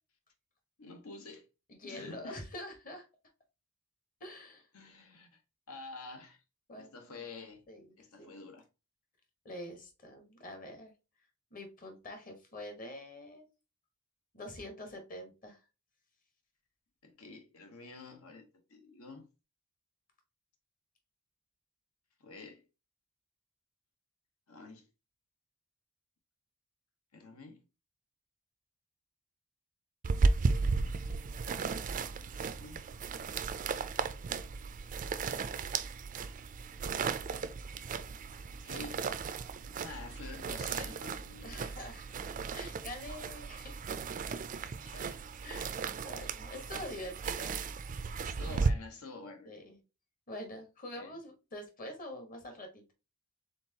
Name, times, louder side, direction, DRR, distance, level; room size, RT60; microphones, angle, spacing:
voice 1, 0.8-1.4 1.8-2.4 4.7-5.4 5.7-6.4 6.7-7.6 8.0-8.6 17.0-19.3 22.2-22.6 24.5-24.8 27.1-27.6 32.1-32.8 38.5-39.1 39.6-41.6 44.8-45.3 48.2-49.5 51.0-51.2, left 3 dB, 80° left, 1.2 m, -48 dB
voice 2, 1.7-3.1 4.2-4.7 6.7-6.9 7.1-7.2 7.7-8.4 9.4-10.9 11.5-13.5 14.3-15.6 41.4-43.8 45.4-45.7 46.0-47.6 49.4-49.8 50.3-52.9, left 1 dB, 40° left, 1.3 m, -45 dB
sound 1, 30.0-48.7, right 4 dB, 40° right, 0.3 m, -35 dB
4.4 x 3.8 x 2.8 m
head